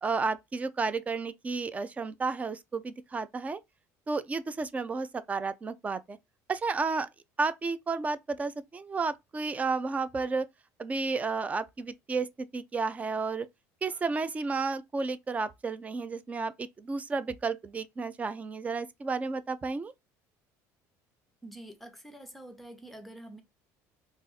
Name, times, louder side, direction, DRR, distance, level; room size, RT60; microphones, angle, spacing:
voice 1, 0.0-3.6 4.1-6.2 6.5-7.1 7.4-10.5 10.8-13.5 13.8-19.9, right 4 dB, 20° right, 0.4 m, -32 dB
voice 2, 21.4-23.4, right 1 dB, ahead, 0.8 m, -46 dB
2.5 x 2.5 x 3.9 m
cardioid pair, 120°, 7 cm